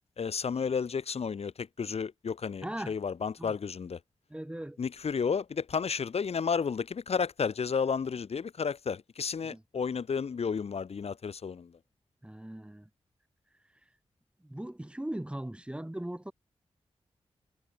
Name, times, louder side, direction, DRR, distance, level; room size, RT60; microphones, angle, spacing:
voice 1, 0.2-4.0 4.8-11.7, left 6 dB, 70° left, 2.6 m, -32 dB
voice 2, 2.6-2.9 3.4-3.5 4.3-4.8 9.4-9.6 12.2-12.9 14.4-16.3, right 1 dB, 10° right, 2.4 m, -39 dB
wide cardioid pair, 95°, 11 cm